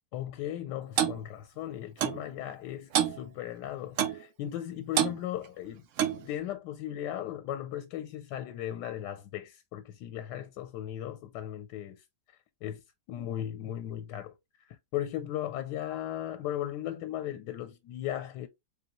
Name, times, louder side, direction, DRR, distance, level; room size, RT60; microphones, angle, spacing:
voice 1, 0.1-5.8 6.2-12.0 12.6-12.8 13.1-18.5, left 11 dB, 90° left, 1.2 m, -37 dB
Clock, 1.0-1.2 2.0-2.2 2.9-3.2 4.0-4.2 5.0-5.2 6.0-6.2, right 10 dB, 65° right, 0.8 m, -27 dB
3.9 x 3.5 x 2.9 m
omnidirectional pair, 1.8 m